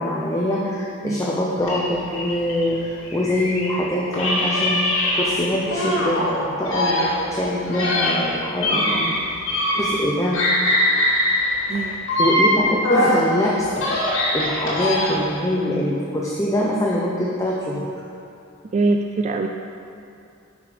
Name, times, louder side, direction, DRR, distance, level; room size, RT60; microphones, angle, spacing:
voice 1, 0.0-9.1 9.7-10.4 11.7-11.9 12.2-13.9 14.3-18.0, left 1 dB, 15° left, -4 dB, 0.8 m, -24 dB
sound 1, 1.6-3.7 4.1-6.3 6.6-10.1 10.3-13.2 13.6-15.3, left 1 dB, 65° left, 2.2 m, -22 dB
voice 2, 8.7-9.2 11.7-12.0 18.7-19.5, right 3 dB, 35° right, 4 dB, 0.3 m, -23 dB
10.5 x 5.2 x 5.1 m, 2.6 s
head